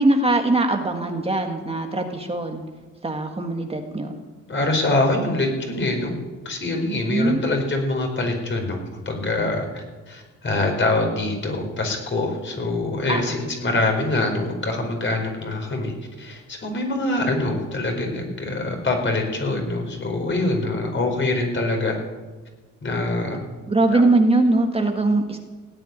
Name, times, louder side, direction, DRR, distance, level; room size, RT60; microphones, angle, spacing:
voice 1, 0.0-2.6 3.0-4.1 7.1-7.4 13.1-13.4 23.7-25.4, right 2 dB, 20° right, 3 dB, 1.7 m, -21 dB
voice 2, 4.5-6.2 6.4-8.8 9.0-22.0 22.8-23.4 23.9-24.1, left 2 dB, 40° left, 3 dB, 4.8 m, -24 dB
17.5 x 8.3 x 9.7 m, 1.3 s
cardioid pair, 90°, 30 cm